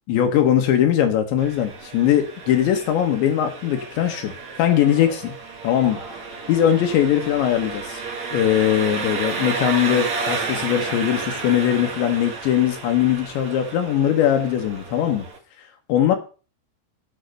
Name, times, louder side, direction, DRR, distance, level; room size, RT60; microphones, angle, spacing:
voice 1, 0.1-4.3 4.6-5.3 5.6-6.0 6.5-8.0 8.3-15.2 15.9-16.2, left 10 dB, 70° left, 6 dB, 3.3 m, -20 dB
Engine, 1.4-15.4, right 4 dB, 40° right, 3.1 m, -32 dB
10.0 x 9.2 x 6.6 m, 0.37 s
omnidirectional pair, 5.8 m